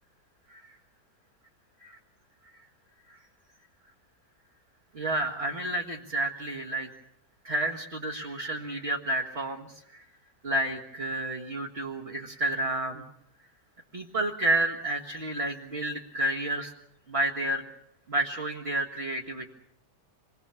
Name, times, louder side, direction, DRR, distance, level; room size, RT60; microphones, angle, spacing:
voice 1, 4.9-6.9 7.4-10.0 10.4-13.0 13.9-16.7 17.1-17.6 18.1-19.5, right 1 dB, 35° right, -2 dB, 2.0 m, -30 dB
26.5 x 21.5 x 7.0 m, 0.74 s
omnidirectional pair, 1.8 m